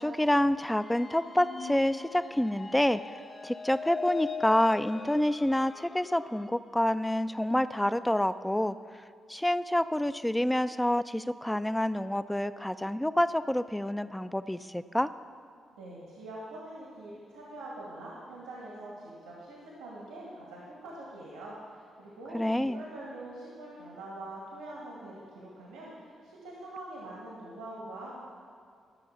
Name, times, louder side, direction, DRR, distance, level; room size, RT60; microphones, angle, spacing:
voice 1, 0.0-3.0 3.4-8.8 9.3-15.1 22.3-22.8, left 1 dB, 10° left, 13 dB, 0.5 m, -27 dB
sound 1, 0.6-6.5, left 5 dB, 35° left, 1.4 m, -41 dB
voice 2, 15.8-28.1, right 1 dB, 90° right, -5 dB, 2.0 m, -44 dB
12.5 x 6.4 x 6.9 m, 2.3 s
hypercardioid pair, 40°, 0 cm